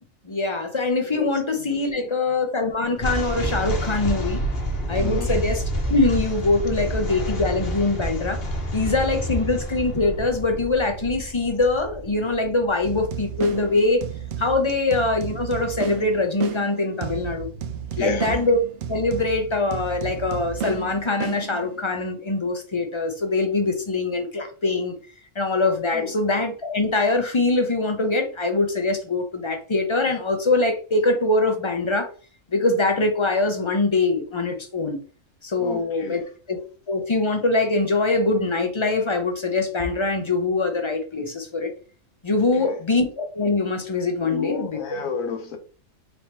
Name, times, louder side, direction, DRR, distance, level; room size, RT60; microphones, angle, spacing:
voice 1, 0.2-4.4 4.9-5.6 5.9-8.4 8.7-14.0 14.4-17.5 18.0-18.6 18.9-24.9 25.4-32.1 32.5-35.0 35.4-36.2 36.5-36.6 36.9-41.7 42.2-44.8, left 3 dB, 35° left, 0.5 m, -23 dB
voice 2, 1.7-2.4 5.0-5.3 18.0-18.3 25.9-26.1 35.6-36.2 42.5-42.8 44.2-45.6, left 6 dB, 75° left, 1.3 m, -32 dB
sound 1, 3.0-14.3, right 1 dB, 50° left, 1.2 m, -29 dB
sound 2, 12.8-22.0, right 9 dB, 65° right, 0.6 m, -33 dB
4.1 x 3.4 x 3.0 m
omnidirectional pair, 1.4 m